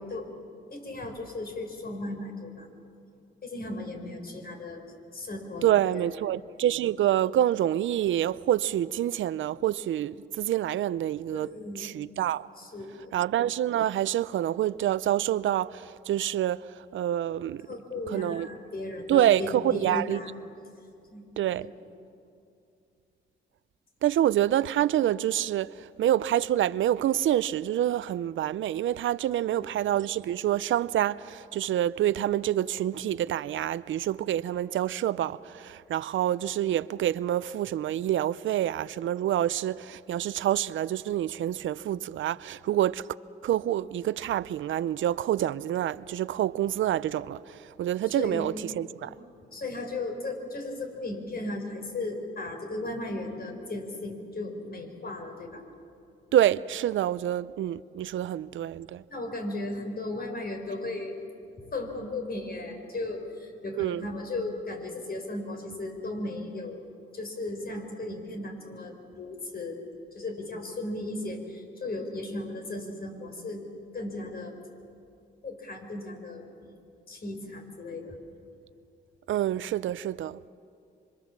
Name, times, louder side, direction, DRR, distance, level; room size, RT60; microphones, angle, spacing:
voice 1, 0.7-2.7 3.4-4.8 5.1-6.1 11.3-11.9 12.6-13.2 17.7-20.3 21.1-21.2 21.6-21.8 48.2-48.5 49.0-49.1 49.5-55.6 59.1-61.2 61.7-66.8 67.1-69.8 70.1-73.6 73.9-74.5 75.4-76.4 77.1-78.2, left 2 dB, 50° left, 5.1 m, -36 dB
voice 2, 5.6-12.5 13.1-17.7 18.1-18.5 19.1-20.2 21.4-21.7 24.0-43.1 43.4-49.1 56.3-59.0 63.7-64.1 79.3-80.4, right 12 dB, 80° right, 0.6 m, -27 dB
25.5 x 25.0 x 7.4 m
cardioid pair, 70°, 20 cm